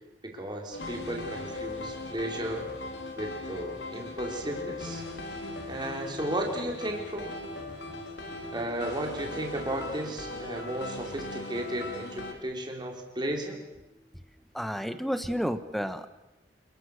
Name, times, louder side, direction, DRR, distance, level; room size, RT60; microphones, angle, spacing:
voice 1, 0.2-2.7 3.2-5.0 5.7-7.3 8.5-13.6, right 1 dB, 25° right, 1 dB, 4.1 m, -34 dB
sound 1, 0.7-12.3, left 2 dB, 75° left, 4.3 m, -39 dB
voice 2, 14.5-16.1, equal, ahead, 11 dB, 1.1 m, -31 dB
29.0 x 22.5 x 6.7 m, 1.0 s
head